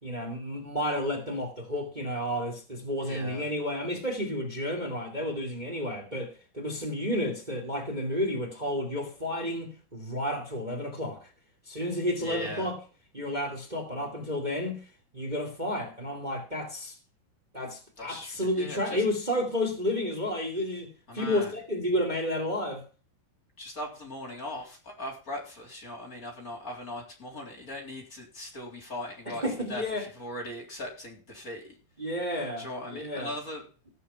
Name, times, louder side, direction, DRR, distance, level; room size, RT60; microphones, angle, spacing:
voice 1, 0.0-11.3 11.6-12.7 13.1-14.8 15.1-16.9 17.5-22.8 29.2-30.0 32.0-33.3, left 1 dB, 20° right, 1.1 m, -31 dB
voice 2, 3.0-3.5 12.2-12.7 18.0-19.0 21.1-21.5 23.6-29.4 29.7-29.8 30.2-31.7 32.6-33.6, left 1 dB, 20° left, 3.2 m, -39 dB
17.5 x 6.9 x 5.6 m
omnidirectional pair, 5.8 m